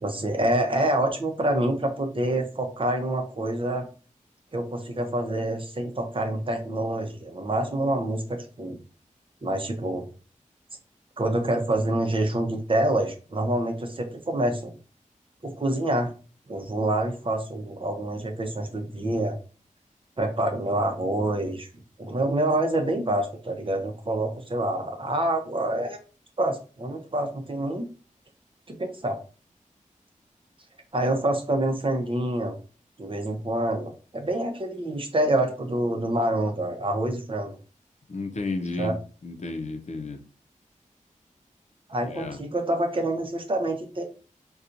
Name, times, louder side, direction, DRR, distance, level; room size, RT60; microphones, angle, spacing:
voice 1, 0.0-3.9 4.5-8.8 9.4-10.0 11.2-14.7 15.4-16.1 16.5-19.4 20.2-21.7 22.0-26.0 26.4-27.9 28.8-29.2 30.9-32.5 33.0-37.6 38.8-38.9 41.9-44.0, right 1 dB, 40° right, 3 dB, 0.7 m, -27 dB
voice 2, 38.1-39.0 39.2-40.2 42.0-42.4, left 3 dB, 55° left, 5 dB, 0.7 m, -32 dB
4.2 x 2.3 x 2.6 m, 0.37 s
wide cardioid pair, 85°, 14 cm